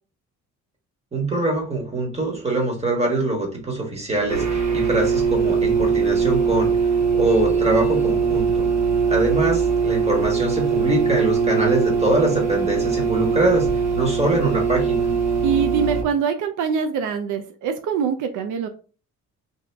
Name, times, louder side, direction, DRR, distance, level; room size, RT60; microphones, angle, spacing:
voice 1, 1.1-8.7 9.1-15.1, right 2 dB, 20° right, 1.3 m, -23 dB
sound 1, 4.3-16.0, right 5 dB, 60° right, 1.0 m, -21 dB
voice 2, 15.4-18.7, right 6 dB, 85° right, 0.5 m, -24 dB
2.8 x 2.3 x 3.4 m
cardioid pair, 90°, 30 cm